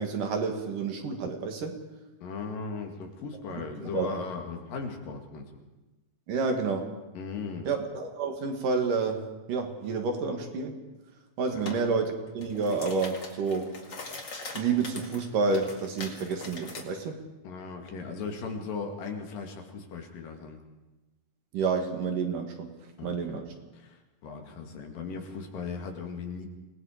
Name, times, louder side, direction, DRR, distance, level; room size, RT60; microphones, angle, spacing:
voice 1, 0.0-1.8 3.9-4.1 6.3-6.9 7.7-10.8 11.4-13.7 14.5-17.2 21.5-22.7 23.0-23.5, right 4 dB, 70° right, 4 dB, 3.5 m, -29 dB
voice 2, 2.2-5.5 7.2-7.7 11.5-11.8 17.4-20.6 23.0-23.4 23.7-26.5, left 4 dB, 75° left, 3 dB, 3.8 m, -37 dB
sound 1, 11.7-11.8 12.3-16.9, left 3 dB, 35° left, 2.5 m, -42 dB
27.0 x 19.0 x 5.1 m, 1.1 s
omnidirectional pair, 3.9 m